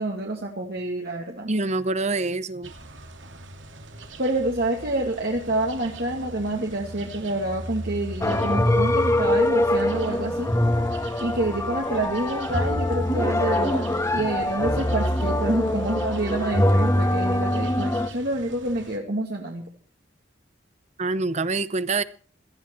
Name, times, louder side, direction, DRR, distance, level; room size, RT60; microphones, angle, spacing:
voice 1, 0.0-1.5 4.2-10.5 11.2-13.8 14.1-19.7, right 1 dB, 55° right, 2.3 m, -27 dB
voice 2, 1.5-2.7 21.0-22.0, right 3 dB, 35° right, 0.9 m, -25 dB
sound 1, 2.6-19.0, right 1 dB, 80° right, 2.7 m, -39 dB
sound 2, 8.2-18.1, left 1 dB, 15° left, 1.5 m, -23 dB
18.0 x 13.5 x 4.6 m
head